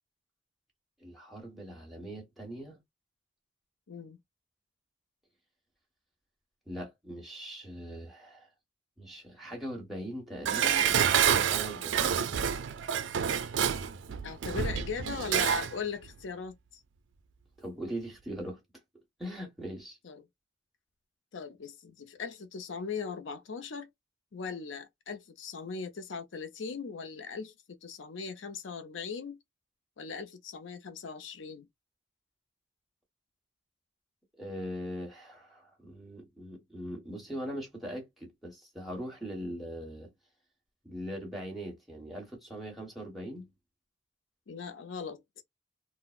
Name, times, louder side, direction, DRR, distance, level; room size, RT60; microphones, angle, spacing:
voice 1, 1.0-2.8 6.7-8.5 9.0-12.2 17.6-18.6 19.2-20.0 34.4-40.1 40.8-43.5, equal, ahead, 1.3 m, -41 dB
voice 2, 3.9-4.2 14.2-16.8 20.0-20.2 21.3-23.9 24.3-27.5 27.8-29.4 30.0-31.7 44.5-45.2, left 5 dB, 75° left, 0.5 m, -39 dB
Dishes pots and pans, 10.4-15.7 16.1-16.2, right 8 dB, 75° right, 0.4 m, -28 dB
3.8 x 2.0 x 2.4 m
head